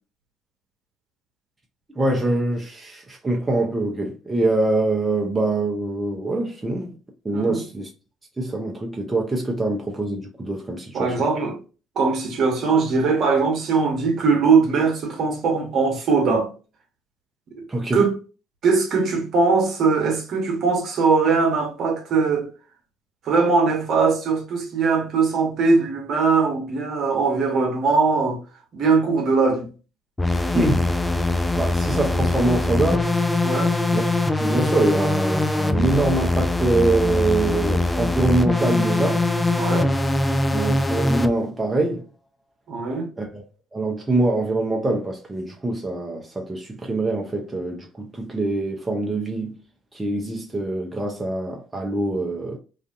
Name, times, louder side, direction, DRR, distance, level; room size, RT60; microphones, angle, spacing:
voice 1, 1.9-7.0 7.2-7.9 8.4-11.1 17.7-18.1 30.5-30.9 31.5-33.1 33.9-34.0 34.4-39.2 40.5-42.0 43.2-43.4 43.7-49.5 49.9-52.6, right 2 dB, 20° right, 0.6 m, -24 dB
voice 2, 10.9-11.6 12.0-16.5 17.9-18.1 18.6-22.5 23.2-28.4 28.7-29.7 33.4-33.7 39.6-39.9 42.7-43.1, right 4 dB, 55° right, 1.0 m, -20 dB
sound 1, 30.2-41.3, left 2 dB, 15° left, 0.3 m, -22 dB
2.5 x 2.4 x 2.5 m
hypercardioid pair, 55°, 0 cm